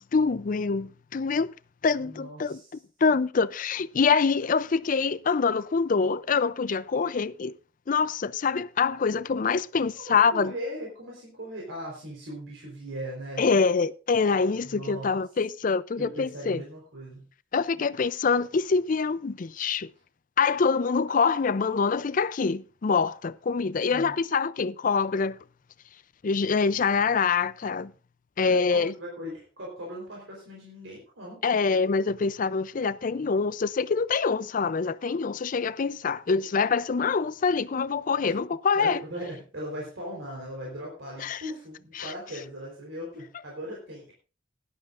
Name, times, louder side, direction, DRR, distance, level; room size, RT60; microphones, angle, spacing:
voice 1, 0.0-1.5 1.8-2.6 3.0-7.5 7.9-10.5 13.4-16.6 17.5-19.9 20.4-25.4 26.2-27.9 28.4-28.9 31.4-39.0 41.2-41.4 42.0-42.1, left 5 dB, 45° left, 0.4 m, -25 dB
voice 2, 2.0-2.8 9.9-13.4 14.6-15.2 16.0-17.3 23.9-24.2 28.4-31.4 38.3-38.4 38.7-44.1, equal, 80° right, 3.9 m, -39 dB
17.0 x 11.5 x 2.5 m
head